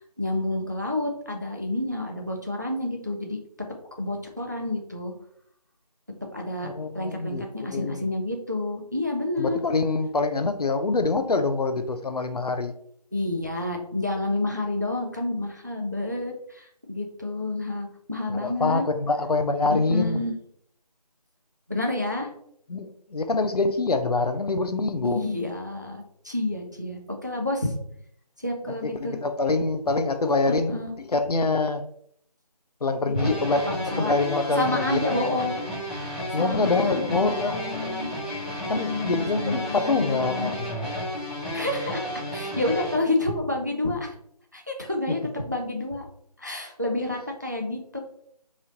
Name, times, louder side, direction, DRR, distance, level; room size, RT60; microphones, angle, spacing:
voice 1, 0.2-3.4 4.0-5.1 6.3-6.7 6.9-9.6 13.1-18.8 19.7-20.3 21.7-22.3 25.0-27.7 28.4-29.2 30.5-30.9 33.2-33.3 33.9-34.1 34.5-35.6 36.3-38.1 38.8-40.5 41.5-44.1 44.5-46.0 46.4-48.0, left 2 dB, 30° right, 0.4 m, -29 dB
voice 2, 6.6-8.1 9.4-12.7 18.3-20.2 22.7-25.2 28.8-30.8 31.0-31.8 32.8-35.3 36.3-37.6 38.7-40.8 45.1-45.2, left 3 dB, 70° left, 0.5 m, -25 dB
sound 1, 33.1-43.0, left 1 dB, 10° left, 0.6 m, -32 dB
3.1 x 2.6 x 3.9 m
figure-of-eight pair, 165°, 21 cm